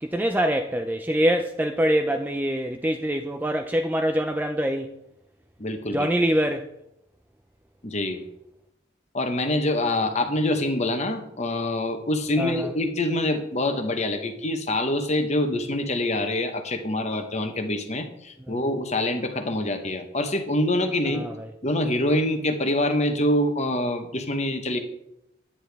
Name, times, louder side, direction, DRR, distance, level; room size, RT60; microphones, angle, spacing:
voice 1, 0.0-4.9 5.9-6.6 12.4-12.7 18.5-18.6 21.1-21.5, equal, 10° right, 0.3 m, -24 dB
voice 2, 5.6-6.1 7.8-8.2 9.1-21.2 21.6-24.8, left 1 dB, 35° left, 1.0 m, -25 dB
9.9 x 9.8 x 3.5 m
head